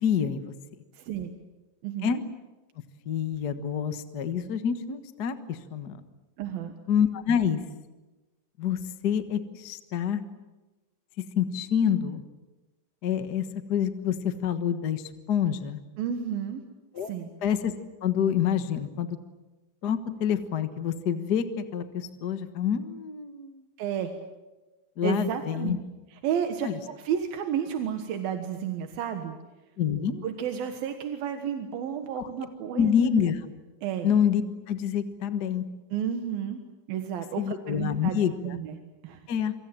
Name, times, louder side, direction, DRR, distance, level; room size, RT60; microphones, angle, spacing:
voice 1, 0.0-0.4 2.0-2.2 3.0-6.0 6.9-7.6 8.6-10.2 11.2-12.2 13.0-15.8 16.9-17.1 17.4-17.7 18.0-19.2 19.8-23.6 25.0-25.8 26.6-26.8 29.8-30.2 32.2-32.3 32.7-33.5 34.0-34.4 34.7-35.7 37.4-38.5 39.3-39.5, left 8 dB, 60° left, 9 dB, 1.0 m, -27 dB
voice 2, 1.0-1.4 1.8-2.2 6.4-6.7 16.0-16.6 17.1-17.3 23.8-24.1 25.0-25.7 26.2-26.7 27.0-29.4 30.2-32.9 33.8-34.1 35.9-36.6 36.9-38.1 38.4-38.8 39.0-39.3, right 8 dB, 85° right, 6 dB, 3.3 m, -31 dB
28.0 x 25.0 x 7.6 m, 1.1 s
omnidirectional pair, 4.1 m